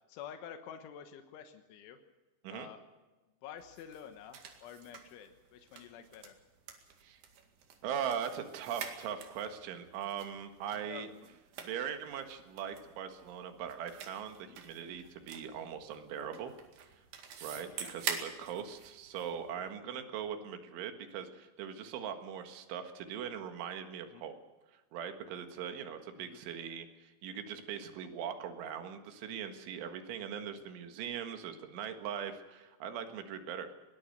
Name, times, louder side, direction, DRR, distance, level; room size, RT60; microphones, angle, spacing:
voice 1, 0.1-2.0 2.5-2.8 3.4-6.4 10.7-11.1 14.5-14.6 17.5-17.9 24.1-24.2 26.2-26.4, left 8 dB, 90° left, 7 dB, 3.7 m, -49 dB
sound 1, 3.6-19.7, right 7 dB, 65° right, 3.8 m, -47 dB
voice 2, 7.8-11.1 11.6-16.5 17.4-24.3 24.9-33.7, right 8 dB, 90° right, 7 dB, 4.2 m, -40 dB
21.5 x 19.0 x 6.7 m, 1.2 s
omnidirectional pair, 5.3 m